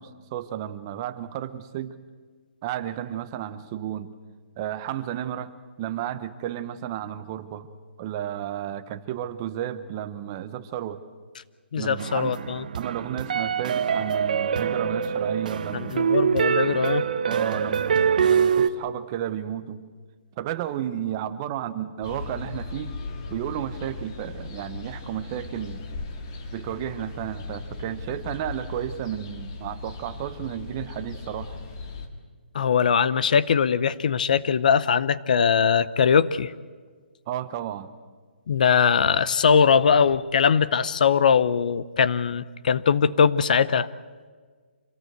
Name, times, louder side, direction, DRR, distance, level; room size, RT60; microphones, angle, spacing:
voice 1, 0.0-2.0 2.6-4.1 4.6-7.7 8.0-11.0 11.7-12.4 12.7-15.9 17.3-19.8 20.4-22.9 23.3-25.9 26.5-31.6 37.3-37.9, right 11 dB, 20° right, 12 dB, 0.8 m, -32 dB
voice 2, 11.7-12.6 15.7-17.1 32.5-36.5 38.5-43.9, left 6 dB, 45° left, 16 dB, 0.7 m, -21 dB
sound 1, 12.0-18.7, right 7 dB, 45° right, 0.9 m, -24 dB
sound 2, 22.0-32.1, left 3 dB, 25° left, 2.1 m, -38 dB
26.5 x 18.0 x 8.1 m, 1.5 s
hypercardioid pair, 170°, 6 cm